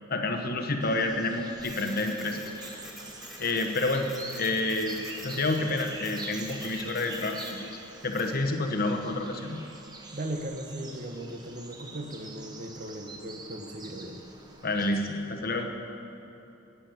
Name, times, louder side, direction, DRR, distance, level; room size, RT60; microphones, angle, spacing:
voice 1, 0.1-2.4 3.4-4.1 4.4-7.7 8.0-9.6 14.6-15.7, left 2 dB, 45° left, 4 dB, 1.1 m, -29 dB
sound 1, 0.8-15.0, right 2 dB, 20° right, 1.0 m, -44 dB
Printer, 1.6-8.4, left 1 dB, ahead, 1.6 m, -46 dB
voice 2, 10.1-14.2, right 1 dB, 40° right, 5 dB, 1.0 m, -37 dB
11.0 x 8.6 x 9.1 m, 3.0 s
head